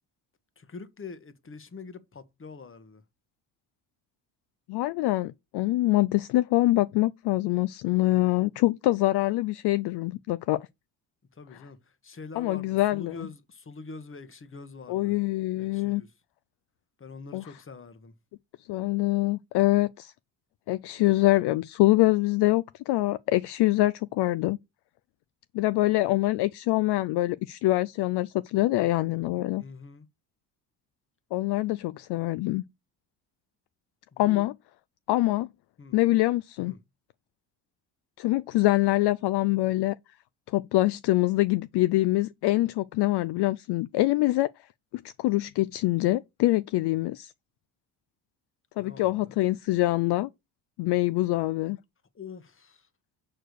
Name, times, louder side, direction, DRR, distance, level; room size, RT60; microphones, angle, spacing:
voice 1, 0.6-3.0 11.3-11.8 12.0-15.2 15.6-16.1 17.0-18.1 29.6-30.1 34.1-34.4 35.8-36.0 36.6-36.8 48.8-49.4 52.1-52.9, left 4 dB, 25° left, 1.2 m, -44 dB
voice 2, 4.7-10.6 12.4-13.3 14.9-16.0 17.3-17.4 18.7-20.1 20.7-24.6 25.5-29.6 31.3-32.6 34.2-34.5 35.1-35.5 35.9-36.7 38.2-39.9 40.5-44.5 44.9-47.3 48.8-50.3 50.8-51.8, left 18 dB, 60° left, 0.5 m, -25 dB
6.6 x 4.5 x 6.6 m
supercardioid pair, 65°, 47 cm